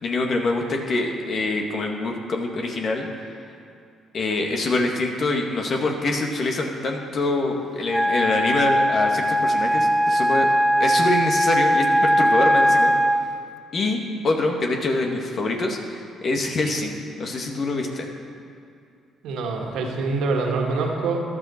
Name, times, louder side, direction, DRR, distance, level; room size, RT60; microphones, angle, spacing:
voice 1, 0.0-3.1 4.1-10.5 10.8-12.9 13.7-18.1, left 2 dB, 50° left, 2 dB, 1.9 m, -25 dB
Wind instrument woodwind instrument, 7.9-13.3, equal, ahead, 0.7 m, -19 dB
voice 2, 19.2-21.2, right 3 dB, 70° right, 1 dB, 1.8 m, -25 dB
14.5 x 11.0 x 4.4 m, 2.5 s
hypercardioid pair, 50°, 0 cm